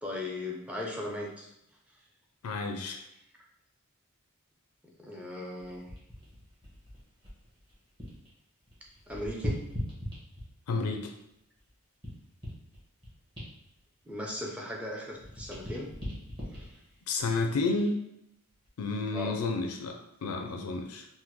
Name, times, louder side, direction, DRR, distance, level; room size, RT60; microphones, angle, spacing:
voice 1, 0.0-1.5 5.0-5.9 9.1-9.6 14.1-15.9 19.1-19.4, left 1 dB, 5° right, -2 dB, 0.5 m, -37 dB
voice 2, 2.4-3.0 10.7-11.1 17.1-18.0 18.8-21.1, left 3 dB, 85° left, 5 dB, 0.4 m, -31 dB
sound 1, 5.6-8.3 8.6-10.7 11.3-14.8 15.1-17.9 18.5-18.7, left 1 dB, 20° right, 1.0 m, -41 dB
3.5 x 2.1 x 3.0 m, 0.80 s
head